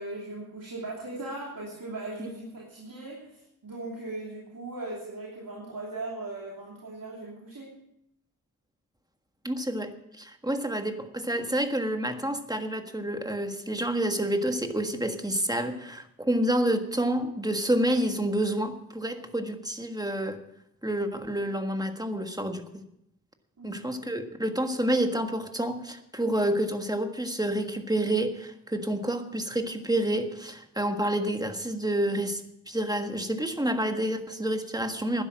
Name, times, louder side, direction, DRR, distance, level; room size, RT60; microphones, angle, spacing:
voice 1, 0.0-7.8 23.6-23.8, right 2 dB, 75° right, -4 dB, 3.0 m, -38 dB
voice 2, 9.4-20.4 20.8-22.8 23.6-32.4 32.7-35.2, right 1 dB, 10° right, 6 dB, 1.5 m, -29 dB
12.0 x 10.0 x 7.4 m, 0.79 s
wide cardioid pair, 65°, 34 cm